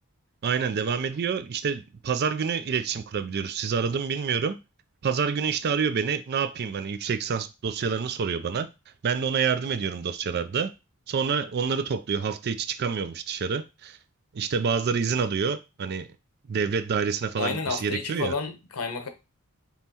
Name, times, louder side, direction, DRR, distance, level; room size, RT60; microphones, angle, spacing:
voice 1, 0.4-4.6 5.0-8.7 9.0-10.7 11.1-14.0 14.3-16.1 16.5-18.3, right 6 dB, 45° right, 0.4 m, -27 dB
voice 2, 17.3-19.1, left 4 dB, 85° left, 0.9 m, -30 dB
5.4 x 3.1 x 2.9 m
head